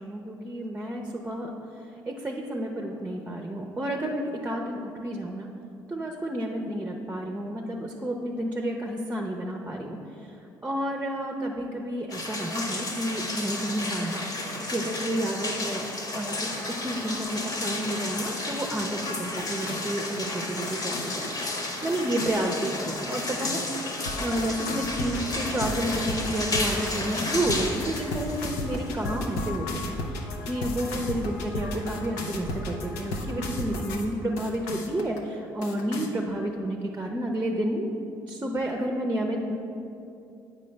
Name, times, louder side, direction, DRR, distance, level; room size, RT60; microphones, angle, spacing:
voice 1, 0.0-1.5 2.1-5.5 5.9-10.0 10.6-14.3 14.7-15.9 16.1-16.4 16.8-21.3 21.8-23.6 24.2-37.9 38.3-39.6, right 1 dB, 15° right, 1 dB, 0.6 m, -30 dB
sound 1, 12.1-29.3, left 2 dB, 40° left, 1.1 m, -33 dB
sound 2, 16.3-34.1 34.4-35.2 35.6-36.1, left 1 dB, 80° left, 0.6 m, -35 dB
8.4 x 4.9 x 3.3 m, 2.7 s
hypercardioid pair, 55°, 10 cm